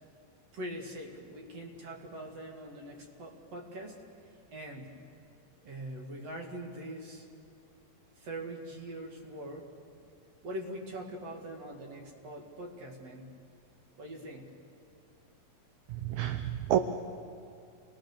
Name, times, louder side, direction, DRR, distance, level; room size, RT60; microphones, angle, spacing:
voice 1, 0.5-4.0 4.5-5.0 5.6-7.3 8.2-9.7 10.4-13.3 14.0-14.5, right 1 dB, 50° right, 1 dB, 3.1 m, -42 dB
voice 2, 15.9-16.8, right 12 dB, 75° right, 9 dB, 1.8 m, -29 dB
28.5 x 19.5 x 6.8 m, 2.4 s
omnidirectional pair, 4.2 m